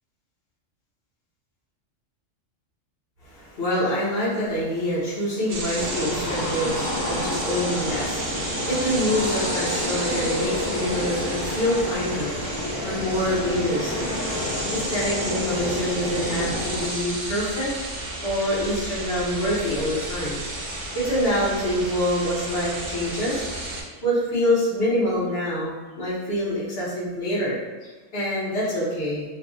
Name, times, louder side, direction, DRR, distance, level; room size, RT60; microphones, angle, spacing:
voice 1, 3.2-14.1 14.7-17.7 18.2-20.4 20.9-23.5 24.0-27.6 27.8-29.2, equal, 55° left, -8 dB, 1.2 m, -26 dB
sound 1, 5.5-23.8, right 1 dB, 60° right, 0.4 m, -32 dB
sound 2, 5.7-16.9, left 1 dB, 90° left, 1.0 m, -30 dB
3.1 x 2.4 x 2.5 m, 1.3 s
omnidirectional pair, 1.3 m